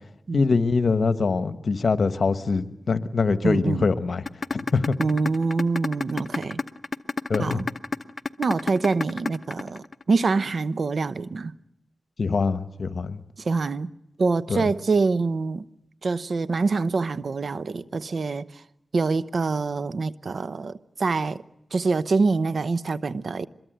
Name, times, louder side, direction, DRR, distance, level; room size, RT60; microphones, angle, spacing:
voice 1, 0.3-4.2 4.5-4.9 7.3-7.6 12.2-13.2 14.5-14.6, left 4 dB, 70° left, 1.3 m, -23 dB
voice 2, 3.4-3.9 5.0-6.6 7.4-7.6 8.4-11.5 13.4-13.9 14.2-15.6 16.0-18.5 18.9-21.4 21.7-23.5, right 4 dB, 70° right, 0.8 m, -25 dB
sound 1, 4.3-10.3, left 4 dB, 50° left, 0.9 m, -28 dB
24.5 x 22.0 x 7.9 m
cardioid pair, 55°, 0 cm